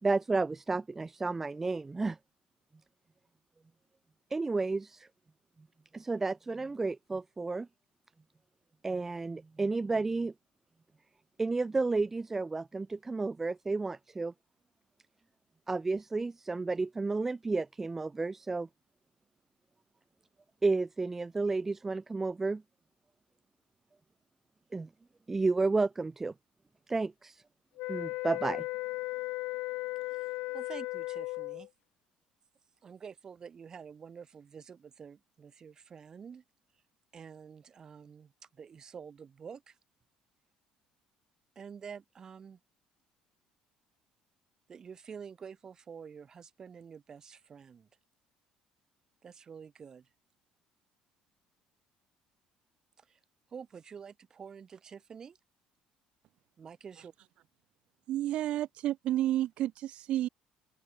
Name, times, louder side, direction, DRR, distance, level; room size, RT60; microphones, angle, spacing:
voice 1, 0.0-2.2 4.3-5.1 5.9-7.7 8.8-10.3 11.4-14.3 15.7-18.7 20.6-22.6 24.7-24.9 25.3-26.3 26.9-27.4 27.9-28.6, right 3 dB, 15° right, 1.9 m, -31 dB
sound 1, 27.8-31.7, left 21 dB, 85° left, 1.1 m, -36 dB
voice 2, 30.1-31.7 32.8-36.4 37.1-39.8 41.6-42.6 44.7-47.9 49.2-50.1 53.0-53.2 53.5-55.4 56.6-57.1, right 6 dB, 30° right, 5.7 m, -48 dB
voice 3, 58.1-60.3, right 13 dB, 60° right, 1.5 m, -31 dB
open air
cardioid pair, 140°, 2 cm